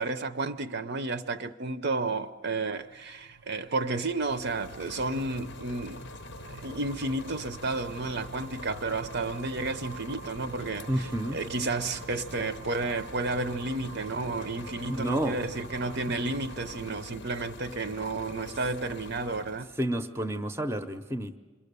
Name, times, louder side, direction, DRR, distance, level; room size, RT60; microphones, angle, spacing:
voice 1, 0.0-6.0 6.5-19.7, right 3 dB, 50° right, 0.7 m, -32 dB
sound 1, 2.5-16.9, right 5 dB, 75° right, 0.9 m, -47 dB
sound 2, 4.0-19.8, left 3 dB, 50° left, 0.6 m, -45 dB
voice 2, 10.9-11.4 14.9-15.5 19.8-21.4, right 1 dB, 10° right, 0.7 m, -30 dB
27.5 x 22.0 x 6.8 m
head